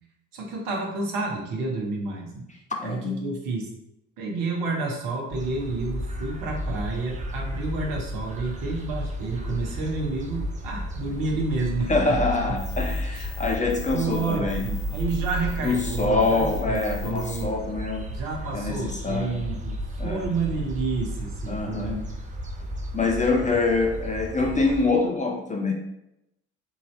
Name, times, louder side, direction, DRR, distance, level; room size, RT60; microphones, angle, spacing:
voice 1, 0.3-2.5 2.8-3.7 4.2-12.2 13.1-13.2 13.9-17.5 18.1-22.0, right 3 dB, 60° right, -1 dB, 1.0 m, -30 dB
voice 2, 2.8-3.2 11.9-14.6 15.6-18.0 18.5-19.4 20.0-20.3 21.5-22.0 22.9-25.7, left 3 dB, 20° left, 1 dB, 0.6 m, -25 dB
sound 1, 5.3-24.9, equal, 20° right, 0.5 m, -33 dB
sound 2, 12.6-17.4, left 5 dB, 65° left, 0.8 m, -44 dB
3.7 x 2.7 x 3.1 m, 0.84 s
figure-of-eight pair, 45°, 37 cm